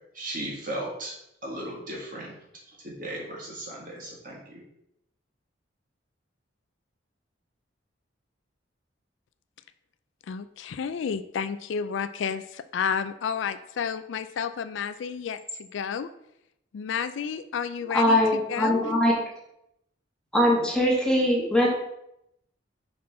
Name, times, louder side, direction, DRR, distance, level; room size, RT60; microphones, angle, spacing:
voice 1, 0.1-1.1 1.4-2.3 2.8-4.6, right 1 dB, 45° right, -2 dB, 1.7 m, -36 dB
voice 2, 10.3-16.1 16.7-18.2 18.5-18.8, left 7 dB, 75° left, 12 dB, 0.4 m, -31 dB
voice 3, 17.9-19.1 20.3-21.7, left 1 dB, 5° left, -2 dB, 1.2 m, -21 dB
5.6 x 4.3 x 4.2 m, 0.80 s
head